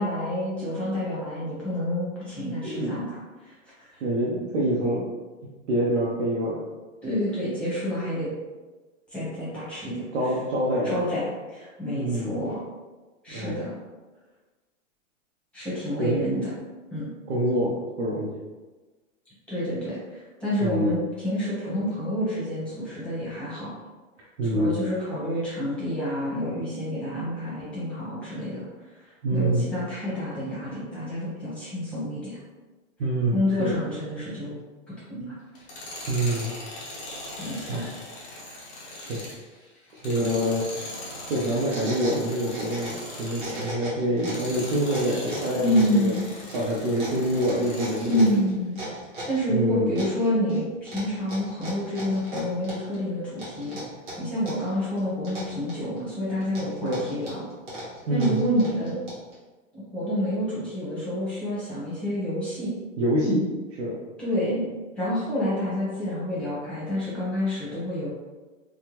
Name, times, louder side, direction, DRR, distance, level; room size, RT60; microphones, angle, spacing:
voice 1, 0.0-4.0 7.0-8.3 9.1-10.3 10.8-12.6 13.2-13.7 15.5-16.5 16.9-17.1 19.5-23.7 24.5-28.6 28.9-32.4 33.3-34.6 35.1-35.3 37.4-37.8 45.6-46.2 48.0-48.8 49.3-53.8 54.2-57.5 58.1-59.0 59.7-62.7 64.2-64.7 64.9-68.1, equal, 5° left, -9 dB, 1.0 m, -28 dB
voice 2, 4.0-5.1 5.7-6.6 10.1-10.9 11.9-12.3 13.3-13.6 16.0-16.2 17.3-18.3 20.6-21.0 24.4-24.8 29.2-29.7 33.0-33.8 36.1-36.5 37.7-37.9 39.0-39.4 39.9-41.0 41.3-46.2 46.5-48.4 49.5-49.9 56.8-57.0 58.1-58.4 63.0-63.4 63.7-63.9, right 1 dB, 70° right, -6 dB, 0.8 m, -26 dB
Tools, 35.5-43.7 44.2-48.4, left 1 dB, 20° left, 0.5 m, -40 dB
sound 1, 41.3-43.1 43.3-44.5 44.9-49.4 50.0-50.6 50.9-53.0 53.4-54.7 55.0-56.0 56.4-59.3, right 1 dB, 25° right, 1.3 m, -38 dB
3.5 x 2.2 x 2.9 m, 1.2 s
hypercardioid pair, 150°, 39 cm